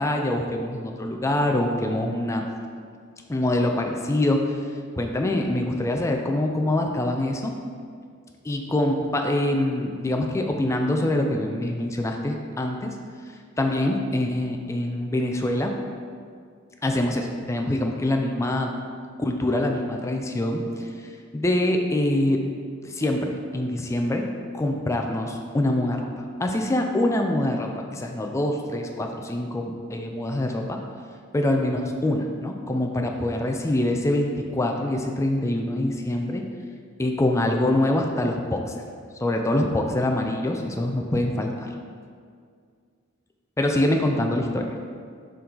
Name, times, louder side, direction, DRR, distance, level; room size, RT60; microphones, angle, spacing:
voice 1, 0.0-2.4 3.3-4.6 5.0-7.5 8.4-12.9 13.6-15.7 16.8-18.7 19.2-22.4 22.8-30.8 31.3-36.4 37.0-38.7 39.2-41.7 43.6-44.7, left 1 dB, 15° left, 3 dB, 0.4 m, -25 dB
6.9 x 3.8 x 3.9 m, 2.1 s
head